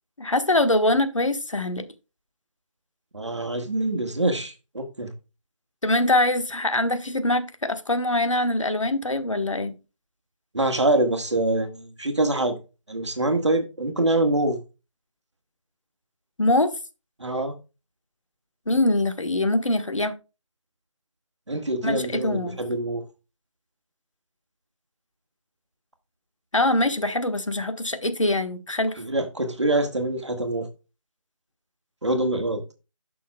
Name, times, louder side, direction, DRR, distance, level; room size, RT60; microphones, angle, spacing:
voice 1, 0.2-1.9 5.8-9.8 16.4-16.7 18.7-20.1 21.8-22.6 26.5-29.0, left 1 dB, 65° left, 1.4 m, -23 dB
voice 2, 3.1-5.1 10.5-12.6 12.9-14.6 17.2-17.5 21.5-23.0 29.0-30.7 32.0-32.6, right 2 dB, 55° right, 1.8 m, -25 dB
11.5 x 6.2 x 2.3 m
figure-of-eight pair, 165°, 17 cm